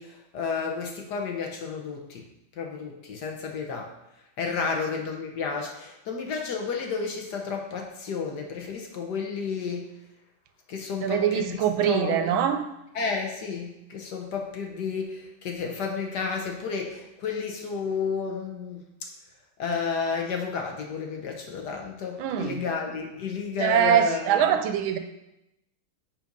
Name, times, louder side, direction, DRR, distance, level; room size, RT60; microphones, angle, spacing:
voice 1, 0.0-2.2 2.6-3.9 4.4-9.9 10.7-12.6 12.9-18.8 19.6-24.5, left 5 dB, 60° left, 2 dB, 1.3 m, -31 dB
voice 2, 11.0-12.6 22.2-22.6 23.6-25.0, right 9 dB, 80° right, 9 dB, 1.4 m, -23 dB
7.5 x 3.9 x 5.2 m, 0.86 s
omnidirectional pair, 2.3 m